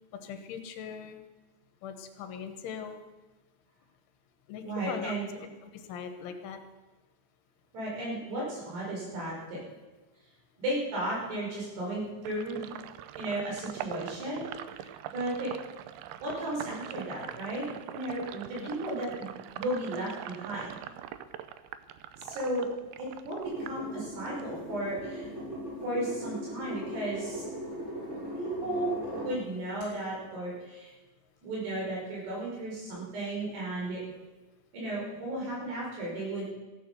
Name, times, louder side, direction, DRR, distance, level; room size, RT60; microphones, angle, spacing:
voice 1, 0.2-1.2 1.8-2.9 4.5-5.1 5.7-6.6 18.6-18.7, left 7 dB, 80° left, 7 dB, 3.6 m, -40 dB
voice 2, 4.6-5.3 7.7-9.6 10.6-12.7 13.2-15.5 16.2-17.7 17.9-19.3 19.6-20.8 22.2-22.7 23.0-25.3 25.8-27.5 28.4-28.9 29.2-30.9 31.4-34.0 34.7-36.5, right 1 dB, 60° right, -4 dB, 7.6 m, -34 dB
Sink (filling or washing), 12.2-24.5 24.9-26.3, right 11 dB, 90° right, 2.2 m, -43 dB
sound 1, 23.4-29.3 29.8-29.9, equal, 15° right, 7.1 m, -39 dB
15.0 x 11.0 x 7.0 m, 1.2 s
omnidirectional pair, 5.4 m